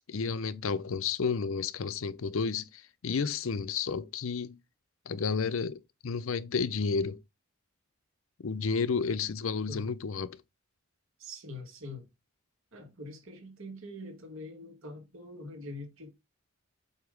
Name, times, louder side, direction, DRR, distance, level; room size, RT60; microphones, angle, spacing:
voice 1, 0.1-4.6 5.1-7.2 8.4-10.4, left 5 dB, 70° left, 0.5 m, -31 dB
voice 2, 11.2-12.1 12.7-16.1, left 1 dB, 70° right, 2.2 m, -44 dB
7.9 x 2.9 x 5.1 m
head